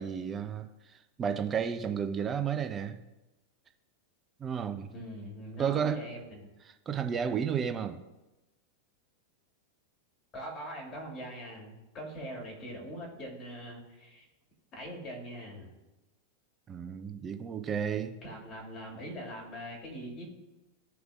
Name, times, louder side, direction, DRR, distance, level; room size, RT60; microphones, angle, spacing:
voice 1, 0.0-3.0 4.4-4.9 5.6-6.0 6.7-8.0 16.7-18.2, right 7 dB, 25° right, 7 dB, 0.6 m, -32 dB
voice 2, 4.9-6.5 10.3-14.3 14.7-15.7 18.2-20.3, equal, 30° left, -1 dB, 2.7 m, -42 dB
14.0 x 4.7 x 2.4 m, 1.0 s
figure-of-eight pair, 90°, 0 cm